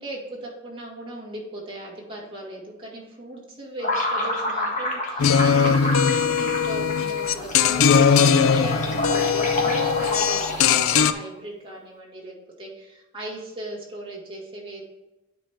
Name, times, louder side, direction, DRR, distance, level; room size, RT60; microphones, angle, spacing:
voice 1, 0.0-14.8, right 1 dB, 25° right, -4 dB, 2.1 m, -37 dB
sound 1, 3.8-11.0, left 1 dB, 35° left, 1.6 m, -28 dB
sound 2, 5.2-11.1, left 7 dB, 70° left, 0.4 m, -20 dB
10.0 x 4.4 x 3.6 m, 1.0 s
head